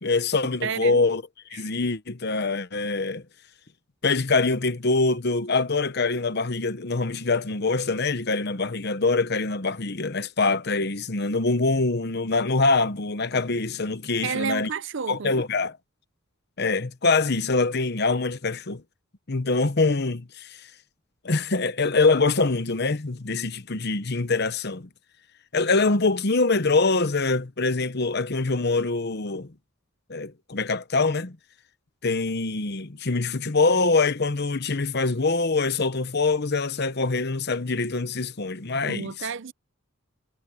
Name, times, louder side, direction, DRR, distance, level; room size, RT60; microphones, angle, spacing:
voice 1, 0.0-1.2 1.5-3.2 4.0-14.7 15.1-15.7 16.6-18.8 19.3-20.6 21.2-24.9 25.5-29.5 30.1-31.4 32.0-39.3, left 3 dB, 50° left, 1.0 m, -24 dB
voice 2, 0.6-1.0 1.5-1.7 14.2-15.3 38.8-39.5, right 6 dB, 60° right, 0.6 m, -31 dB
head